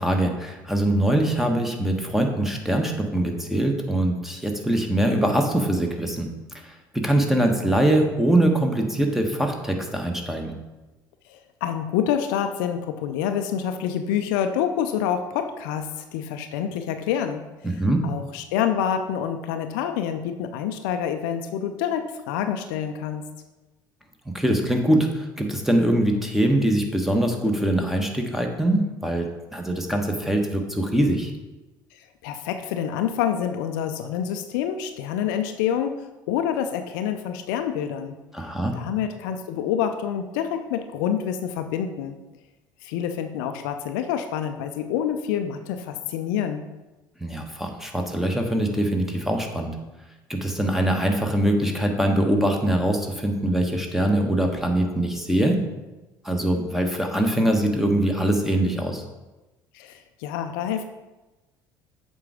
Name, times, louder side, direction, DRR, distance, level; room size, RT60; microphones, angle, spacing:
voice 1, 0.0-6.3 6.6-10.5 17.6-18.0 24.3-31.3 38.3-38.8 47.2-49.7 50.3-55.6 56.2-59.0, right 1 dB, 5° right, 3 dB, 1.3 m, -23 dB
voice 2, 11.3-17.4 18.0-23.2 32.2-36.0 36.3-38.2 38.7-42.2 42.8-46.7 59.7-60.8, left 9 dB, 65° left, 8 dB, 0.5 m, -27 dB
7.5 x 4.6 x 4.9 m, 1.1 s
figure-of-eight pair, 60°, 11 cm